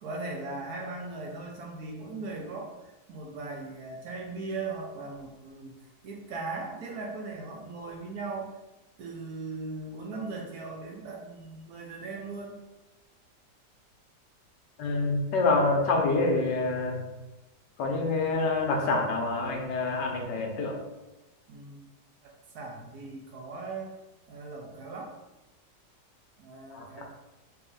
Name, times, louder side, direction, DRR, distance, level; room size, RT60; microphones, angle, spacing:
voice 1, 0.0-5.7 6.0-8.5 9.0-12.6 21.5-21.8 22.2-23.9 24.3-25.1 26.4-27.0, right 3 dB, 65° right, 0 dB, 1.1 m, -38 dB
voice 2, 14.8-17.0 17.8-20.8 26.7-27.0, left 3 dB, 80° left, 1 dB, 1.4 m, -27 dB
4.1 x 2.8 x 3.8 m, 1.0 s
omnidirectional pair, 1.9 m